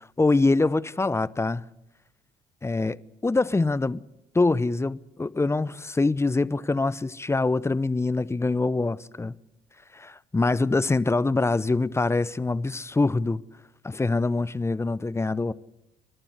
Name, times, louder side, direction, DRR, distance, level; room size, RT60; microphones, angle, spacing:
voice 1, 0.2-1.6 2.6-3.0 3.2-4.0 4.3-9.3 9.9-13.4 13.8-15.5, left 3 dB, 15° left, 0.7 m, -24 dB
30.0 x 12.0 x 8.2 m
hypercardioid pair, 65°, 17 cm